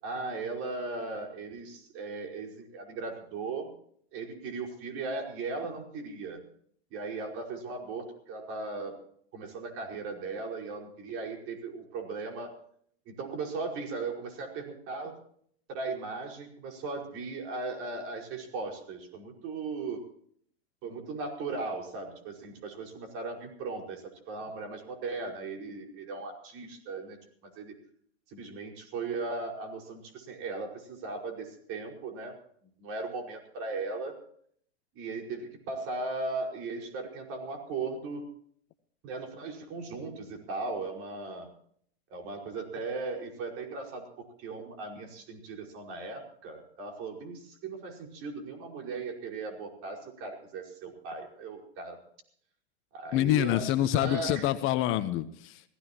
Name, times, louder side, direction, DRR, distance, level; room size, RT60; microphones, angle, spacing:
voice 1, 0.0-3.7 4.1-6.4 6.9-9.0 9.3-12.5 13.0-15.2 15.7-20.0 20.8-27.8 28.3-32.3 32.8-34.2 34.9-38.2 39.0-41.5 42.1-52.0 52.9-54.5, right 3 dB, 45° right, 2 dB, 5.3 m, -37 dB
voice 2, 53.1-55.6, left 13 dB, 40° left, 11 dB, 1.1 m, -26 dB
26.0 x 16.0 x 3.0 m, 0.62 s
hypercardioid pair, 115°, 31 cm